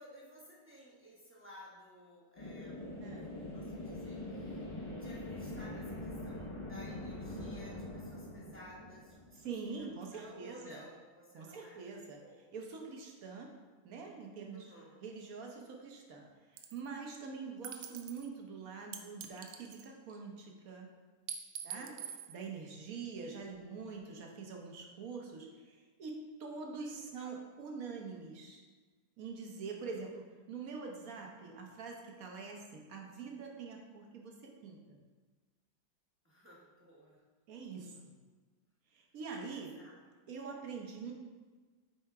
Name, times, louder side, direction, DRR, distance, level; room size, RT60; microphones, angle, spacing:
voice 1, 0.0-11.8 12.1-12.4 14.5-15.0 21.6-22.1 26.9-27.4 29.7-30.0 36.2-37.2 37.8-38.0 39.5-40.0, equal, 10° right, -5 dB, 0.6 m, -56 dB
sound 1, 2.4-9.9, left 1 dB, 35° left, 0.4 m, -43 dB
voice 2, 3.0-3.4 9.4-10.8 11.3-12.2 12.5-13.5 13.8-14.7 15.0-20.9 21.6-21.9 22.3-28.6 29.2-35.0 37.5-38.1 38.9-39.7 40.3-41.1, right 5 dB, 55° right, 1 dB, 1.2 m, -45 dB
sound 2, 16.6-16.9 17.6-18.3 18.9-20.2 21.3-22.3, right 8 dB, 80° right, 1.3 m, -44 dB
7.7 x 3.5 x 4.7 m, 1.4 s
omnidirectional pair, 2.1 m